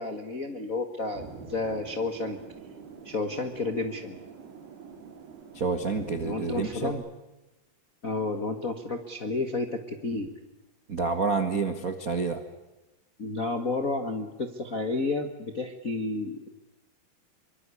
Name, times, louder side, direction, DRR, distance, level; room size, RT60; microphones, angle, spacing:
voice 1, 0.0-2.4 3.0-4.2 6.2-6.9 8.0-10.3 13.2-16.5, left 3 dB, 60° left, 7 dB, 0.8 m, -31 dB
sound 1, 1.1-6.9, right 5 dB, 90° right, 4.9 m, -46 dB
voice 2, 5.5-7.0 10.9-12.4, right 4 dB, 70° right, 8 dB, 0.8 m, -28 dB
24.5 x 24.0 x 8.4 m, 1.0 s
omnidirectional pair, 4.5 m